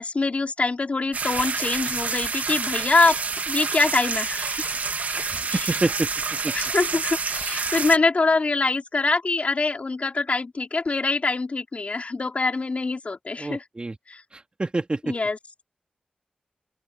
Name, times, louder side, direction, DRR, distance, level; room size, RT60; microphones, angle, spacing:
voice 1, 0.0-3.2 3.5-4.7 5.1-5.6 6.5-13.6 14.1-14.2 15.0-15.4, left 3 dB, 55° left, 3.6 m, -24 dB
sound 1, 1.1-8.0, right 4 dB, 70° right, 1.8 m, -28 dB
voice 2, 5.3-6.1 6.4-6.5 13.4-14.0 14.3-15.2, right 2 dB, 40° right, 3.0 m, -27 dB
open air
cardioid pair, 45°, 3 cm